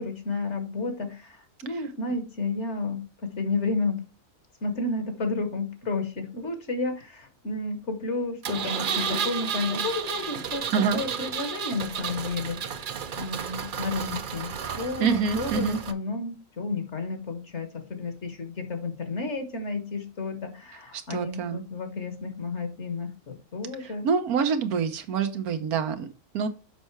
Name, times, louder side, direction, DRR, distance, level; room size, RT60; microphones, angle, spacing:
voice 1, 0.0-4.0 4.6-10.7 10.9-24.1, left 3 dB, 50° left, 7 dB, 1.7 m, -32 dB
Engine, 8.4-15.9, right 7 dB, 50° right, 0.6 m, -32 dB
voice 2, 15.0-15.8 21.1-21.6 24.0-26.1 26.3-26.5, right 6 dB, 85° right, 9 dB, 1.4 m, -25 dB
6.9 x 5.5 x 4.6 m, 0.32 s
omnidirectional pair, 1.5 m